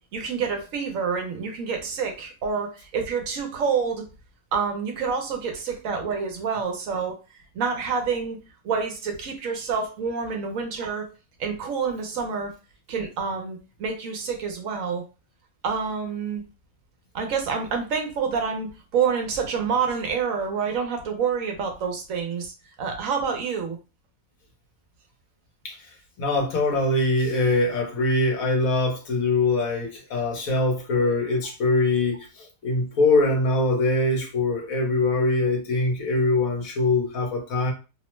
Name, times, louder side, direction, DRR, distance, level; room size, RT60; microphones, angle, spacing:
voice 1, 0.1-4.1 4.5-7.2 7.5-8.4 8.6-11.1 11.4-12.5 12.9-15.0 15.6-16.4 17.1-22.5 22.8-23.8, right 6 dB, 70° right, 3 dB, 0.9 m, -27 dB
voice 2, 26.2-37.7, left 2 dB, 70° left, 1 dB, 1.2 m, -23 dB
2.9 x 2.0 x 3.0 m, 0.30 s
omnidirectional pair, 1.6 m